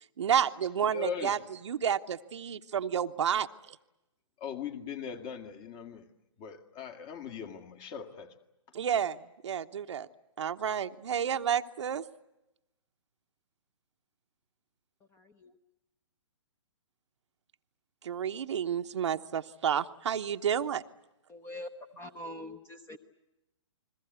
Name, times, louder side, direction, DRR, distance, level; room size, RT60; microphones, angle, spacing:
voice 1, 0.2-1.4 1.6-3.8 8.7-9.2 9.4-10.1 10.4-12.0 18.0-20.8, right 8 dB, 65° right, 8 dB, 1.0 m, -30 dB
voice 2, 0.9-1.4 4.4-6.1 6.4-8.3, left 7 dB, 35° left, 7 dB, 2.1 m, -39 dB
voice 3, 15.1-15.5 21.3-21.7 22.0-23.0, left 1 dB, 15° left, 10 dB, 1.1 m, -43 dB
30.0 x 21.5 x 8.1 m, 0.93 s
hypercardioid pair, 130°, 16 cm